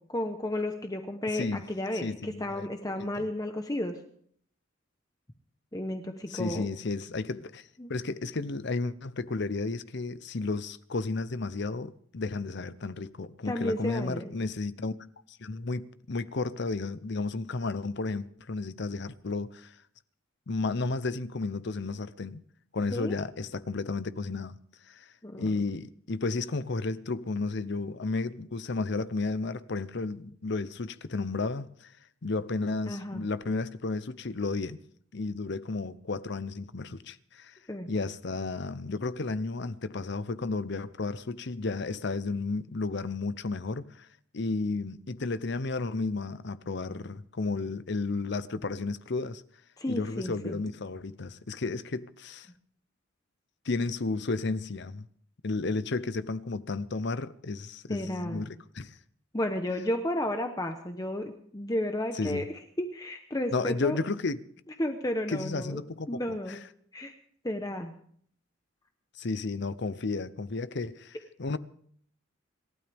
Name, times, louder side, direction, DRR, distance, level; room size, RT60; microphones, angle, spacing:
voice 1, 0.1-4.0 5.7-6.7 7.8-7.9 13.4-14.3 22.9-23.2 25.2-25.5 32.9-33.3 37.7-37.9 49.8-50.6 57.9-58.5 59.3-62.4 62.8-64.0 64.8-65.8 66.1-66.6 66.9-67.1 67.4-67.9, left 1 dB, 20° left, 1.0 m, -32 dB
voice 2, 1.3-1.6 1.9-2.7 3.0-3.3 6.3-14.9 15.3-19.8 20.5-22.4 22.7-24.5 24.9-25.1 25.4-31.9 32.2-34.8 35.1-37.6 37.9-44.1 44.3-49.4 49.9-52.5 53.6-55.1 55.4-59.0 62.1-62.4 63.5-64.4 65.3-66.2 66.5-66.6 69.1-71.6, left 3 dB, 55° left, 0.7 m, -33 dB
27.5 x 12.5 x 3.5 m
head